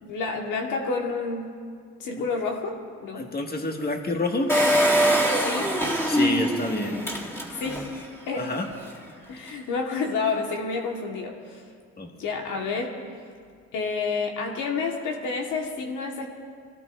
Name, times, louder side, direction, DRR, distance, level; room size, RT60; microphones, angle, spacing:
voice 1, 0.0-1.6 2.0-3.3 5.3-5.7 7.6-8.5 9.3-11.6 12.2-13.0 13.7-16.3, left 4 dB, 85° left, 1 dB, 1.6 m, -29 dB
voice 2, 3.1-4.5 6.1-7.0 8.4-8.7 12.0-12.1, left 2 dB, 30° left, 1 dB, 1.9 m, -28 dB
Engine, 4.5-8.0 8.4-8.5 8.7-8.8, equal, 10° left, 2.6 m, -23 dB
24.0 x 17.5 x 2.6 m, 2.2 s
cardioid pair, 90°, 30 cm